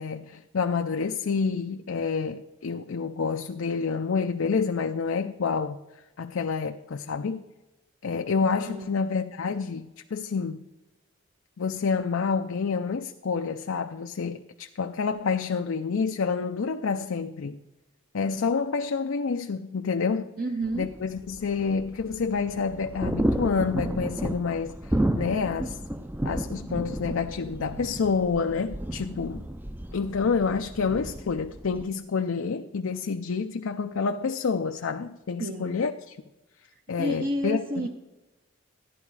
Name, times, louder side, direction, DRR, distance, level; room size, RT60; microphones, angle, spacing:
voice 1, 0.0-5.8 6.2-7.4 8.0-10.6 11.6-17.6 18.1-20.3 20.7-25.8 26.2-29.4 29.9-36.2 36.9-37.9, left 5 dB, 70° left, 0.5 m, -28 dB
voice 2, 20.4-20.9 35.4-35.8 37.0-37.9, right 1 dB, 45° right, 0.8 m, -30 dB
sound 1, 20.6-31.8, right 1 dB, 10° right, 0.5 m, -32 dB
14.5 x 11.0 x 4.8 m
head